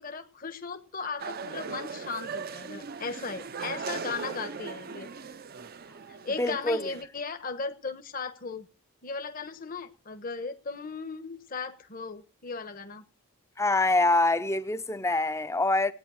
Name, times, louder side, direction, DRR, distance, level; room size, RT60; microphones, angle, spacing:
voice 1, 0.0-5.1 6.1-8.7 9.0-13.0, left 4 dB, 40° left, 1.1 m, -37 dB
sound 1, 1.2-7.0, right 5 dB, 45° right, 0.6 m, -39 dB
voice 2, 6.4-6.8 13.6-15.9, left 2 dB, 15° left, 0.6 m, -25 dB
16.5 x 9.4 x 6.3 m
head